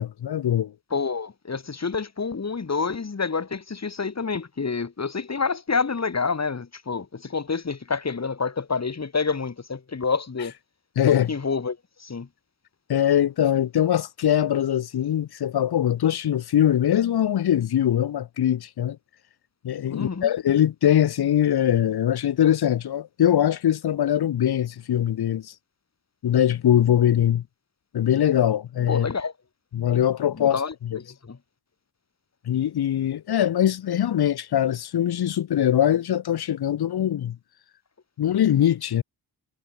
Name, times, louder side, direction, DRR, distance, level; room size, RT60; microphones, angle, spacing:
voice 1, 0.0-0.7 11.0-11.3 12.9-19.0 19.6-25.5 26.2-27.4 27.9-29.1 29.7-31.0 32.5-37.4 38.2-39.0, left 10 dB, 60° left, 0.7 m, -22 dB
voice 2, 0.9-10.5 11.1-12.3 19.9-20.3 28.9-29.3 30.4-31.4, left 5 dB, 40° left, 2.8 m, -28 dB
wide cardioid pair, 135°, 43 cm